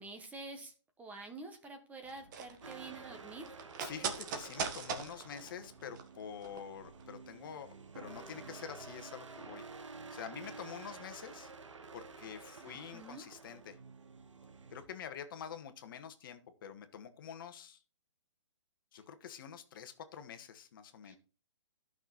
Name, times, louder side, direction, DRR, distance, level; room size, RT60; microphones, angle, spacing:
voice 1, 0.0-3.5 12.6-13.2 18.9-19.0 21.0-21.2, right 3 dB, 10° right, 5 dB, 1.3 m, -48 dB
sound 1, 2.0-6.7 6.9-7.0, right 6 dB, 40° right, 1.7 m, -41 dB
sound 2, 2.6-14.9, right 4 dB, 80° right, 1.5 m, -51 dB
voice 2, 3.8-9.7 10.1-11.5 11.9-13.8 14.7-17.8 18.9-21.2, left 8 dB, 45° left, 8 dB, 1.4 m, -47 dB
11.5 x 6.2 x 4.1 m, 0.35 s
hypercardioid pair, 145°, 15 cm